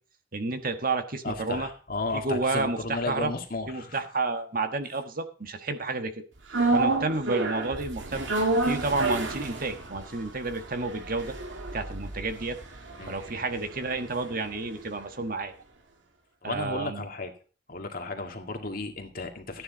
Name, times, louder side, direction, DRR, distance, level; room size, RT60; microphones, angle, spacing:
voice 1, 0.3-1.7 2.1-3.3 3.7-6.1 6.7-8.3 8.6-11.4 11.7-12.6 13.1-15.5 16.4-17.1, right 3 dB, 50° right, 7 dB, 1.6 m, -30 dB
voice 2, 1.2-4.0 6.6-6.8 13.0-13.1 16.4-17.3 17.7-19.6, left 3 dB, 50° left, 4 dB, 2.0 m, -34 dB
sound 1, 6.5-14.8 15.1-15.2, right 2 dB, 85° right, 2.3 m, -30 dB
14.5 x 9.9 x 4.0 m, 0.37 s
head